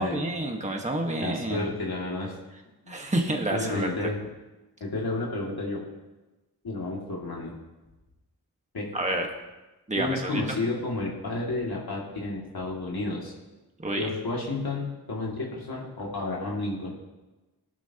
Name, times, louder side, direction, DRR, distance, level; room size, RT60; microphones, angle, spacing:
voice 1, 0.0-1.7 2.9-4.1 8.9-9.3 9.9-10.4 13.8-14.1, right 1 dB, 15° right, 2 dB, 1.5 m, -29 dB
voice 2, 1.2-2.4 2.8-3.1 3.5-4.2 4.8-5.8 6.6-7.5 8.7-8.9 10.0-13.3 14.0-16.9, left 2 dB, 65° left, -4 dB, 2.5 m, -31 dB
19.0 x 12.0 x 3.0 m, 1.1 s
wide cardioid pair, 65°, 40 cm